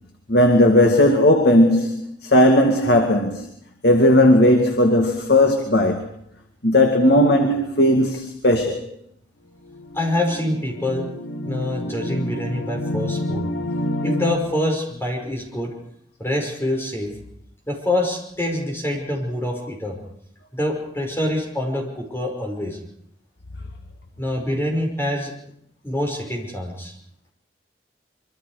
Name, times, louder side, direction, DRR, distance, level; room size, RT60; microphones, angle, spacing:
voice 1, 0.3-3.5 3.8-6.1 6.6-8.8, left 1 dB, 60° left, 2.2 m, -16 dB
sound 1, 9.6-14.4, left 1 dB, 85° left, 2.1 m, -28 dB
voice 2, 9.9-11.1 11.4-13.5 14.0-15.7 16.2-17.1 17.7-20.0 20.5-22.8 24.2-25.3 25.8-26.9, left 1 dB, 15° left, 5.5 m, -25 dB
26.0 x 23.5 x 5.0 m
head